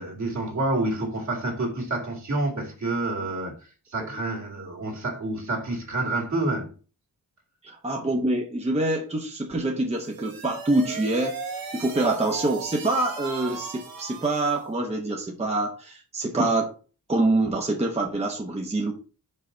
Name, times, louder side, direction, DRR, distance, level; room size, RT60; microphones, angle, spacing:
voice 1, 0.0-6.7, right 2 dB, 55° right, 2.3 m, -28 dB
voice 2, 7.6-11.4 11.7-16.7 17.1-18.9, right 2 dB, 20° right, 0.9 m, -25 dB
sound 1, 9.9-14.7, right 4 dB, 75° right, 1.6 m, -37 dB
5.8 x 5.5 x 3.8 m
wide cardioid pair, 150°, 35 cm